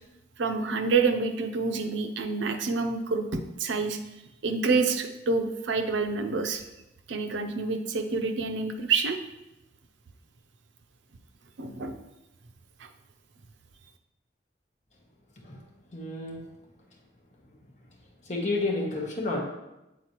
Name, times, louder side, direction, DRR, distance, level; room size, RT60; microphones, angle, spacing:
voice 1, 0.4-4.0 4.4-6.6 7.1-9.2 11.6-12.0 12.8-12.9, right 4 dB, 85° right, 7 dB, 0.5 m, -27 dB
voice 2, 15.9-16.4 18.3-19.4, left 2 dB, 40° left, 0 dB, 1.0 m, -29 dB
8.3 x 4.0 x 3.0 m, 0.95 s
head